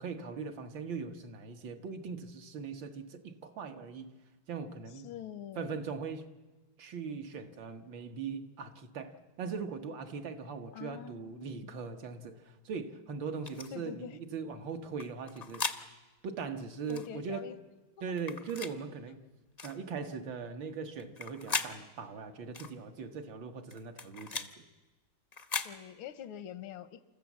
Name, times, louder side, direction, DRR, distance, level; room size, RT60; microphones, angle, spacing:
voice 1, 0.0-4.1 4.5-5.1 5.6-6.3 6.8-15.6 16.2-17.5 18.0-19.2 19.6-24.5, right 5 dB, 70° right, 6 dB, 2.0 m, -40 dB
voice 2, 5.0-5.8 10.7-11.8 13.7-14.2 16.9-17.6 25.6-27.1, left 10 dB, 85° left, 13 dB, 1.7 m, -45 dB
sound 1, 13.4-13.7 15.0-15.8 16.9-17.1 18.2-18.7 19.6-19.8 21.0-21.7 22.5-22.7 23.7-24.5 25.3-25.7, left 4 dB, 45° left, 0.5 m, -37 dB
29.0 x 14.0 x 7.3 m, 1.2 s
omnidirectional pair, 2.2 m